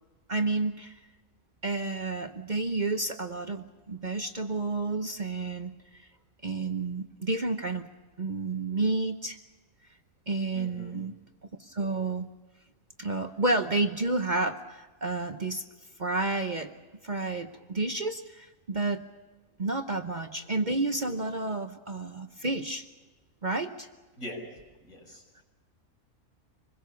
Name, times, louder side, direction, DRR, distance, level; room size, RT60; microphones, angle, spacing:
voice 1, 0.3-0.9 1.6-6.1 6.4-7.9 8.2-9.4 10.3-11.2 11.6-12.3 13.0-15.6 16.0-16.7 17.0-19.0 19.6-22.8 23.4-23.9, right 3 dB, 35° right, 6 dB, 1.0 m, -30 dB
voice 2, 10.5-11.0 24.2-24.4 24.8-25.4, left 1 dB, 70° left, 0 dB, 6.9 m, -42 dB
26.0 x 21.5 x 7.0 m, 1.2 s
omnidirectional pair, 1.5 m